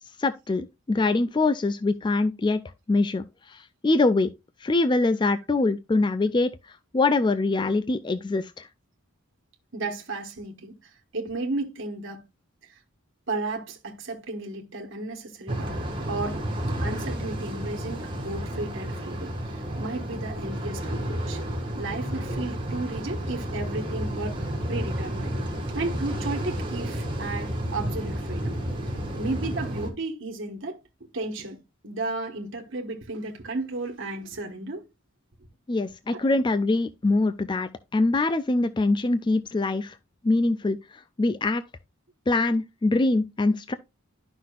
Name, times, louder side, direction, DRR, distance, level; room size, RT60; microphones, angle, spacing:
voice 1, 0.2-4.3 4.6-6.6 6.9-8.7 35.7-40.0 40.2-41.6 42.3-43.7, left 2 dB, 20° left, 0.3 m, -24 dB
voice 2, 9.7-12.2 12.7-12.8 13.3-16.4 16.8-21.4 21.7-25.3 25.7-28.5 29.2-31.6 31.8-34.9 36.1-36.3, right 2 dB, 60° right, 1.3 m, -34 dB
sound 1, 15.5-29.9, equal, 25° right, 1.7 m, -31 dB
11.0 x 5.8 x 2.4 m
head